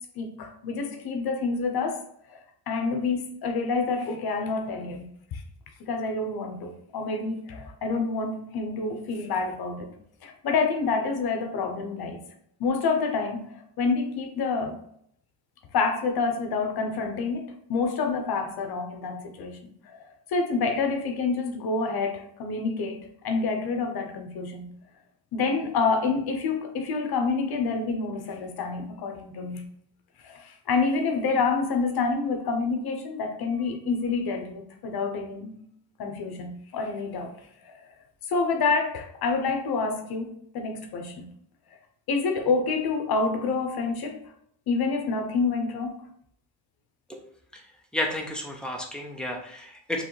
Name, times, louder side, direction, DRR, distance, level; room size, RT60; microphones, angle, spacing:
voice 1, 0.2-2.4 2.7-5.4 5.8-9.9 10.2-12.2 12.6-14.8 15.7-24.8 25.3-29.7 30.2-35.6 36.0-37.3 37.6-37.9 38.3-41.3 42.1-44.2 44.7-46.0, left 4 dB, 55° left, 0.8 m, -28 dB
voice 2, 47.9-50.0, left 1 dB, ahead, 0.4 m, -32 dB
4.7 x 3.2 x 3.2 m
cardioid pair, 175°, 46 cm